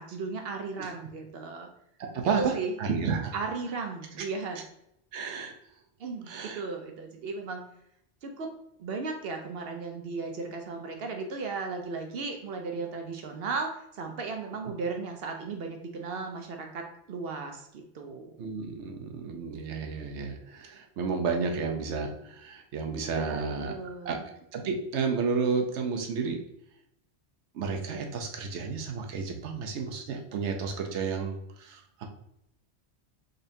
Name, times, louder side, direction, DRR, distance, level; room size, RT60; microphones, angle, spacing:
voice 1, 0.0-1.7 2.4-2.7 3.3-4.6 6.0-7.6 8.2-8.5 8.8-18.3 23.1-24.2, right 4 dB, 65° right, 4 dB, 0.7 m, -36 dB
voice 2, 2.0-3.3 5.1-5.5 6.3-6.6 18.4-23.7 24.0-24.2 24.5-26.4 27.5-32.1, right 5 dB, 90° right, 3 dB, 1.0 m, -31 dB
3.9 x 3.2 x 2.6 m, 0.76 s
omnidirectional pair, 1.1 m